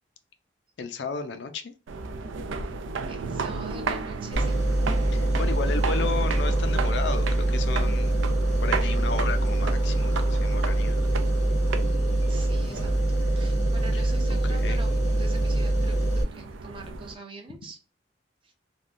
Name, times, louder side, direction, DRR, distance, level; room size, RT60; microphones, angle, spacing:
voice 1, 0.8-1.7 5.1-8.1 8.6-11.0 13.9-14.0 14.5-14.8, left 4 dB, 70° left, 8 dB, 0.4 m, -33 dB
sound 1, 1.9-17.1, right 4 dB, 90° right, 0.4 m, -35 dB
voice 2, 3.1-4.6 12.3-17.8 18.4-18.5, right 3 dB, 25° right, 2 dB, 0.5 m, -44 dB
sound 2, 4.3-16.2, right 1 dB, 90° left, 1.0 m, -24 dB
3.4 x 2.2 x 2.5 m, 0.33 s
head